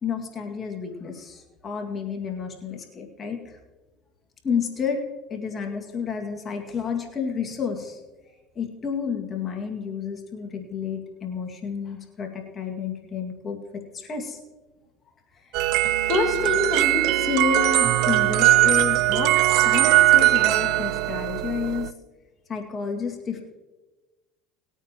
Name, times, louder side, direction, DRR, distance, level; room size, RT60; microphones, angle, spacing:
voice 1, 0.0-3.6 4.4-5.0 5.3-8.0 8.6-13.6 13.9-14.4 15.4-15.6 16.1-21.9 22.5-23.4, left 5 dB, 35° left, 2 dB, 2.1 m, -30 dB
sound 1, 15.5-21.9, right 15 dB, 70° right, 0.5 m, -20 dB
20.0 x 9.2 x 3.0 m, 1.2 s
supercardioid pair, 90°, 0 cm